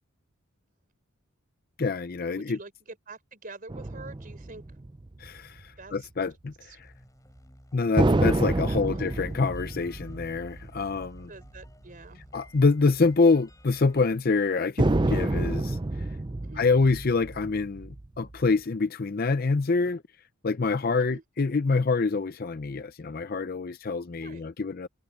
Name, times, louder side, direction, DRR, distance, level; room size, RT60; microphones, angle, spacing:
voice 1, 1.8-2.6 5.2-6.7 7.7-11.3 12.3-16.1 16.6-20.0 20.4-24.9, left 4 dB, 45° left, 0.6 m, -26 dB
voice 2, 2.3-4.8 5.8-6.1 6.6-6.8 8.7-9.1 11.3-12.2 16.4-16.7 21.0-21.2 24.2-24.4, right 3 dB, 40° right, 4.1 m, -46 dB
sound 1, 3.7-5.6 8.0-11.7 12.0-12.1 14.8-18.5, right 2 dB, 20° right, 0.5 m, -28 dB
sound 2, 6.8-14.2, left 1 dB, 15° left, 7.4 m, -55 dB
head